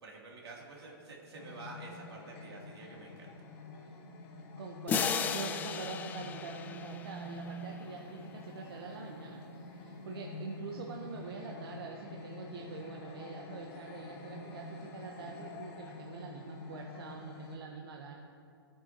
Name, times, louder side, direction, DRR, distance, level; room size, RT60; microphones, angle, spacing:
voice 1, 0.0-3.3, right 2 dB, 90° right, -2 dB, 3.0 m, -48 dB
sound 1, 1.4-17.6, left 2 dB, 35° left, 1.6 m, -47 dB
voice 2, 4.6-18.2, right 4 dB, 70° right, 0 dB, 1.2 m, -45 dB
sound 2, 4.9-7.7, left 6 dB, 15° left, 0.4 m, -35 dB
16.0 x 8.8 x 3.0 m, 2.4 s
hypercardioid pair, 145°, 13 cm